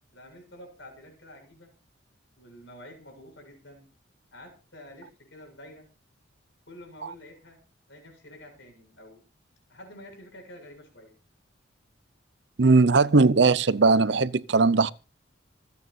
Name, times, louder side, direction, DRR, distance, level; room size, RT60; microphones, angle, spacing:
voice 1, 0.1-1.7 2.4-3.9 4.3-5.9 6.7-7.6 7.9-9.2 9.7-11.1, left 1 dB, 65° left, 7.1 m, -48 dB
voice 2, 12.6-14.9, right 3 dB, 60° right, 0.6 m, -19 dB
26.5 x 9.4 x 2.6 m
head